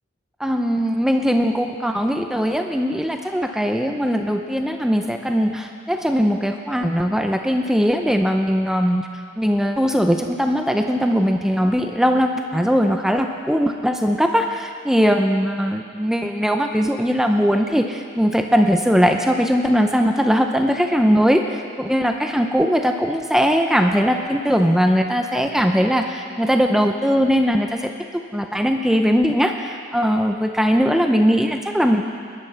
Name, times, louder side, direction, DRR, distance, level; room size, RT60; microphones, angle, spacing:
voice 1, 0.4-9.1 9.4-32.0, equal, ahead, 4 dB, 0.6 m, -20 dB
20.5 x 11.0 x 5.8 m, 2.2 s
head